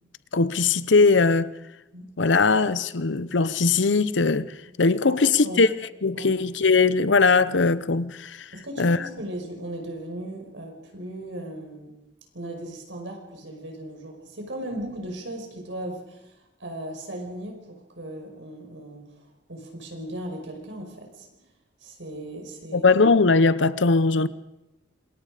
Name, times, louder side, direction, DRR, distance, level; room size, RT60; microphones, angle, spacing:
voice 1, 0.3-1.5 2.2-5.7 6.0-8.5 8.8-9.0 22.7-24.3, left 4 dB, 75° left, 0.9 m, -20 dB
voice 2, 8.5-11.9 12.3-19.1 19.5-21.3 21.8-22.9, right 1 dB, 80° right, 5.2 m, -37 dB
27.0 x 21.5 x 5.1 m
head